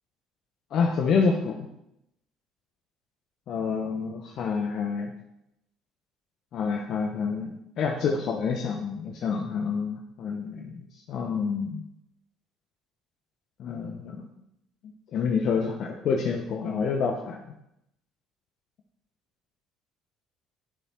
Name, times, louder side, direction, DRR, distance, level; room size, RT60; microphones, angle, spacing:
voice 1, 0.7-1.7 3.5-5.1 6.5-11.8 13.6-14.3 15.1-17.4, left 5 dB, 55° left, 2 dB, 1.0 m, -28 dB
10.0 x 6.7 x 4.4 m, 0.83 s
hypercardioid pair, 60°, 0 cm